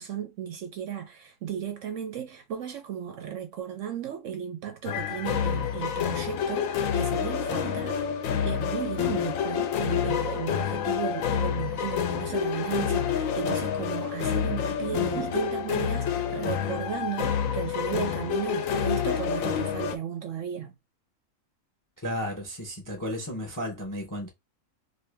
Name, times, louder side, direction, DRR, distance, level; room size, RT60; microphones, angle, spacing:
voice 1, 0.0-20.7, right 9 dB, 70° right, 0.8 m, -35 dB
sound 1, 4.9-20.0, left 8 dB, 70° left, 0.9 m, -28 dB
voice 2, 22.0-24.3, equal, 25° left, 0.4 m, -33 dB
2.8 x 2.5 x 3.3 m
omnidirectional pair, 1.6 m